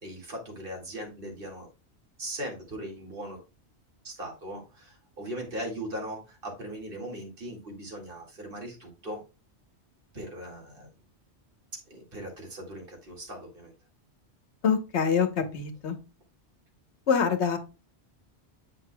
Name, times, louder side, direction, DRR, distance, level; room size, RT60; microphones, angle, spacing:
voice 1, 0.0-1.7 2.2-3.4 4.0-9.2 10.1-10.9 11.9-13.7, right 1 dB, 55° right, 0 dB, 2.3 m, -39 dB
voice 2, 14.6-16.0 17.1-17.6, left 6 dB, 75° left, 7 dB, 1.3 m, -25 dB
7.8 x 5.8 x 2.2 m, 0.29 s
omnidirectional pair, 1.1 m